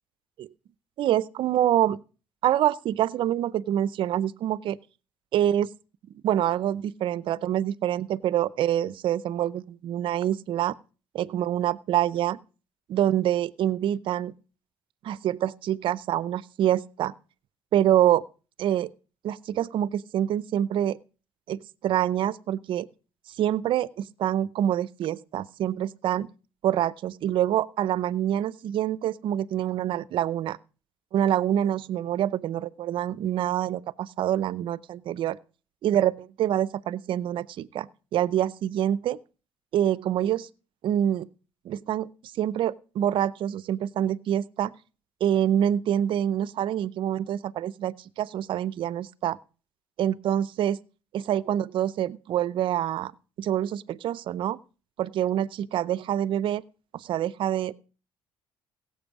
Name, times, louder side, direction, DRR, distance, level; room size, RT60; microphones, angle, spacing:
voice 1, 1.0-2.0 2.4-4.8 5.3-5.7 6.2-10.7 11.1-12.4 12.9-14.3 15.0-17.1 17.7-18.2 18.6-18.9 19.2-21.0 21.5-22.9 23.4-26.3 26.6-30.6 31.1-35.4 35.8-39.2 39.7-40.5 40.8-41.3 41.6-42.1 42.4-44.7 45.2-49.4 50.0-50.8 51.1-53.1 53.4-54.6 55.0-56.6 56.9-57.7, right 11 dB, 60° right, 0.6 m, -26 dB
16.5 x 7.7 x 4.8 m
supercardioid pair, 90°, 10 cm